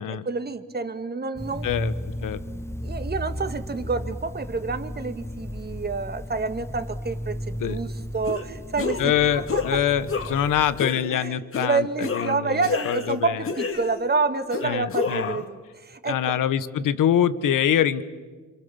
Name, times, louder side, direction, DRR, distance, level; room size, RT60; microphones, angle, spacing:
voice 1, 0.0-1.7 2.8-9.0 9.3-9.6 11.1-16.3, right 4 dB, 30° right, 10 dB, 1.8 m, -28 dB
sound 1, 1.4-10.8, equal, 10° left, 1.0 m, -34 dB
voice 2, 1.6-1.9 2.2-2.4 7.6-7.8 9.0-13.5 14.6-15.4 16.0-18.0, left 10 dB, 85° left, 14 dB, 1.3 m, -24 dB
sound 2, 8.3-8.4 8.8-9.1 9.5-9.7 10.1-10.5 10.8-11.1 11.5-11.7 12.0-13.1 13.4-14.1 14.5-15.5, left 4 dB, 45° left, 2.3 m, -29 dB
28.0 x 26.5 x 7.1 m, 1.4 s
cardioid pair, 110°, 31 cm